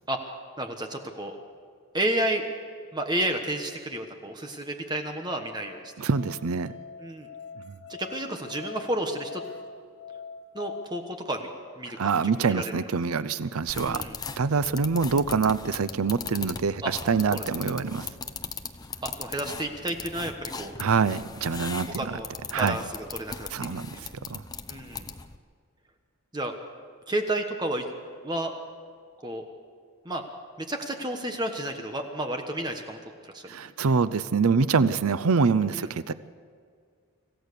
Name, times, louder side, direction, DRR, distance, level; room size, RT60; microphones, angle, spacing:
voice 1, 0.6-1.3 1.9-2.4 2.9-5.9 7.0-7.3 7.9-9.4 10.5-11.5 11.8-12.8 13.8-14.2 16.8-16.9 17.3-17.4 19.0-20.8 21.9-22.3 22.6-23.5 23.9-24.0 24.7-25.0 26.3-26.5 27.1-27.9 28.2-28.5 29.2-29.4 30.0-30.2 30.6-33.0 33.2-33.5 35.7-35.9, right 1 dB, 20° right, 4 dB, 1.2 m, -31 dB
Musical instrument, 5.6-10.9, left 5 dB, 55° left, 0.8 m, -43 dB
voice 2, 6.0-6.7 7.7-7.8 12.0-14.0 14.4-18.1 20.8-22.2 22.5-22.8 23.5-24.4 33.5-36.1, right 5 dB, 90° right, 15 dB, 0.6 m, -25 dB
sound 1, 13.7-25.4, left 5 dB, 20° left, 0.7 m, -39 dB
26.5 x 15.0 x 6.7 m, 2.1 s
head